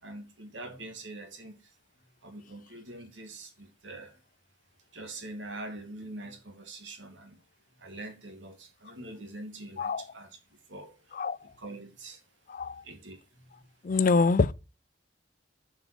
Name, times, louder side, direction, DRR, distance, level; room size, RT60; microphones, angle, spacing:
voice 1, 0.0-1.7 2.2-4.2 4.9-7.4 7.8-11.2 11.6-12.2 12.8-13.7, right 2 dB, 90° right, 2.3 m, -44 dB
voice 2, 12.5-12.8 13.8-14.5, left 4 dB, 45° left, 0.5 m, -25 dB
7.2 x 5.5 x 6.0 m
head